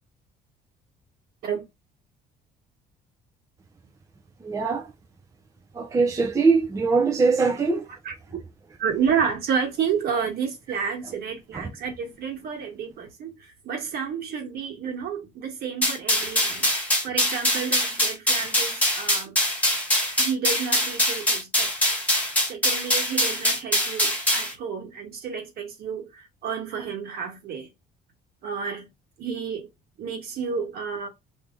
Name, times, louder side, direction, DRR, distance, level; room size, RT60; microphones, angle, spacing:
voice 1, 4.4-4.9 5.7-7.8 11.5-11.7, right 4 dB, 20° right, 0.5 m, -22 dB
voice 2, 8.0-8.4 8.8-16.7 17.0-19.4 20.2-21.7 22.5-27.7 28.4-28.9 29.2-29.7 30.0-31.1, right 6 dB, 65° right, 1.4 m, -30 dB
sound 1, 15.8-24.5, equal, 10° left, 1.4 m, -23 dB
2.8 x 2.6 x 3.6 m
cardioid pair, 110°, 17 cm